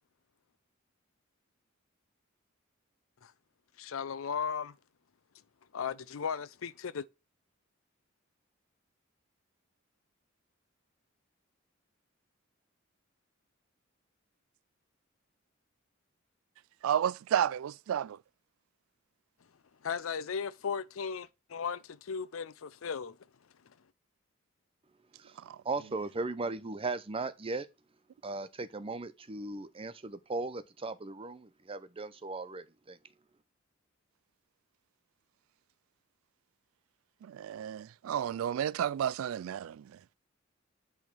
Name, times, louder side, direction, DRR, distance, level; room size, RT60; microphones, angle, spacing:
voice 1, 3.8-4.7 5.7-7.1 19.8-23.2 23.7-23.8, left 6 dB, 85° left, 0.5 m, -36 dB
voice 2, 16.8-18.2 37.3-39.8, right 9 dB, 90° right, 0.3 m, -31 dB
voice 3, 25.6-27.7 28.2-33.0, right 3 dB, 30° right, 0.6 m, -37 dB
8.7 x 3.5 x 6.0 m
head